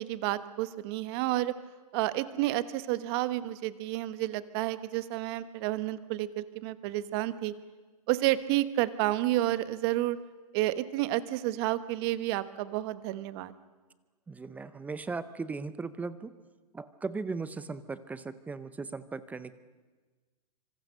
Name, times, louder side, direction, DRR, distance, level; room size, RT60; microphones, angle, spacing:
voice 1, 0.0-1.5 1.9-7.5 8.1-10.2 10.5-13.5, right 15 dB, 40° right, 13 dB, 1.2 m, -30 dB
voice 2, 14.3-16.3 16.7-19.5, right 4 dB, 10° right, 14 dB, 0.6 m, -37 dB
25.5 x 24.0 x 6.7 m, 1.3 s
hypercardioid pair, 145°, 20 cm